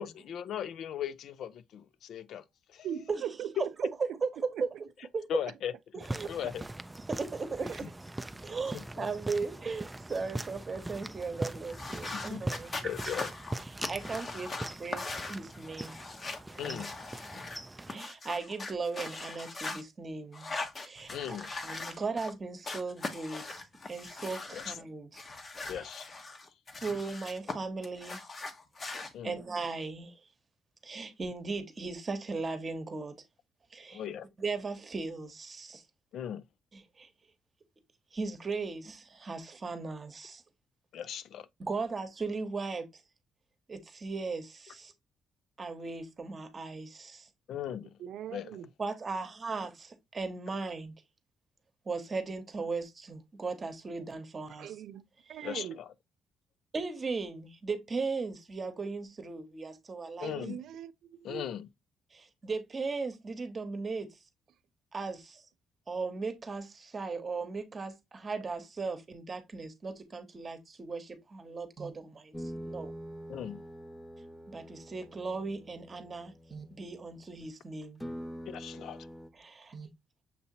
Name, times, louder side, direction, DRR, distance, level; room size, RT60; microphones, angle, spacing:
voice 1, 0.0-2.4 2.7-2.9 3.6-3.7 5.3-5.7 6.3-6.6 8.7-9.1 12.1-12.4 12.8-13.3 16.6-17.0 21.1-21.5 24.5-24.7 25.7-26.1 29.1-29.4 33.9-34.3 36.1-36.4 40.9-41.5 47.5-48.0 48.3-48.5 55.4-55.7 60.2-60.6 61.2-61.7 73.3-73.6 78.5-79.1, left 9 dB, 70° left, 0.4 m, -38 dB
voice 2, 2.8-3.6 4.5-4.6 7.6-7.8 48.0-48.7 54.5-55.8 60.2-61.5, right 10 dB, 75° right, 0.4 m, -41 dB
sound 1, 6.0-18.0, right 1 dB, 10° right, 0.3 m, -41 dB
voice 3, 7.1-7.9 8.4-12.8 13.6-16.0 16.5-16.8 17.3-17.4 17.9-20.5 20.8-21.1 21.6-25.1 25.7-25.9 26.8-28.2 29.2-30.2 30.8-33.2 33.7-34.0 34.4-35.8 36.7-37.1 38.1-40.4 41.6-42.9 43.7-44.9 45.6-47.3 48.8-50.9 51.9-54.7 56.7-60.3 62.1-64.1 64.9-65.4 65.9-72.9 74.5-78.1 79.3-79.9, right 4 dB, 35° right, 1.0 m, -37 dB
sound 2, 11.7-17.6 17.9-19.8 20.3-22.3 22.6-24.8 25.1-27.5 27.8-29.1, left 3 dB, 35° left, 0.9 m, -40 dB
sound 3, 72.3-77.6 78.0-79.3, equal, 10° left, 0.7 m, -45 dB
6.6 x 2.8 x 2.7 m
cardioid pair, 90°, 0 cm